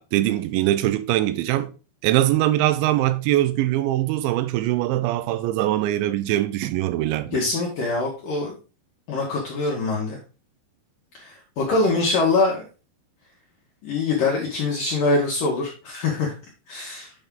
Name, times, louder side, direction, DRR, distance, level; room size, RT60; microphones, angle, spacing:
voice 1, 0.0-1.7 2.0-7.4, right 14 dB, 80° right, 2.9 m, -22 dB
voice 2, 7.3-8.6 9.1-10.2 11.2-12.6 13.8-16.3 16.7-17.1, left 3 dB, 60° left, 2.5 m, -24 dB
8.5 x 5.4 x 3.7 m
omnidirectional pair, 5.5 m